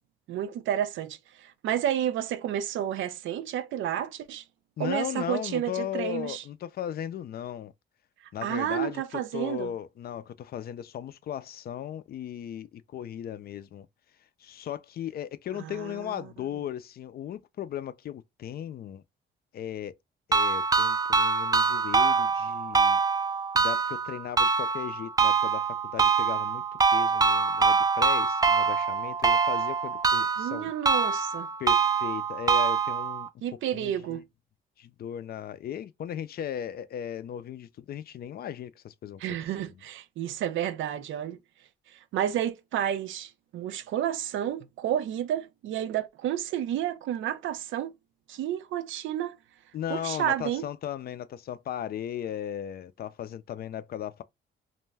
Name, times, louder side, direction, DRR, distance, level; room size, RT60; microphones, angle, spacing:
voice 1, 0.3-4.4 4.8-6.4 8.4-9.7 15.5-16.2 30.4-31.5 33.4-34.2 39.2-41.4 42.1-47.9 48.3-49.4 49.9-50.6, right 11 dB, 75° right, 0.5 m, -31 dB
voice 2, 4.8-7.7 8.3-13.9 14.4-19.0 19.5-19.9 20.3-23.0 23.5-25.7 25.9-26.6 26.9-30.7 31.6-33.3 33.7-34.2 34.8-39.4 49.7-54.2, left 10 dB, 50° left, 0.4 m, -36 dB
sound 1, 20.3-33.3, right 5 dB, 20° right, 0.4 m, -24 dB
2.5 x 2.2 x 3.2 m
cardioid pair, 90°, 20 cm